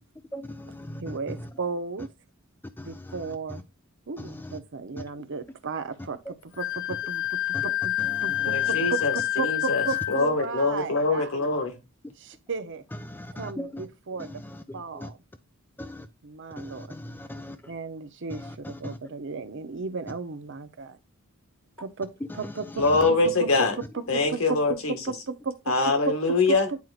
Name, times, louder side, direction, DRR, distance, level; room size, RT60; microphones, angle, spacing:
voice 1, 0.3-1.4 2.8-3.2 4.2-4.6 7.5-7.7 8.0-8.6 13.0-13.9 14.2-15.1 15.8-16.1 16.6-17.6 18.3-19.0 22.4-23.1, left 1 dB, 10° left, 0.3 m, -39 dB
voice 2, 1.0-2.1 2.8-3.6 4.1-7.9 8.2-11.4 12.2-12.8 13.3-14.3 14.7-15.2 16.2-16.9 17.7-21.0 21.8-22.8 23.1-24.6 24.9-25.7 26.0-26.2 26.5-26.8, right 4 dB, 60° right, 0.7 m, -34 dB
Wind instrument woodwind instrument, 6.6-10.3, left 14 dB, 60° left, 0.8 m, -27 dB
voice 3, 8.4-11.7 22.8-23.7 24.1-24.9 25.7-26.7, left 3 dB, 75° left, 1.7 m, -24 dB
9.4 x 4.5 x 2.4 m
head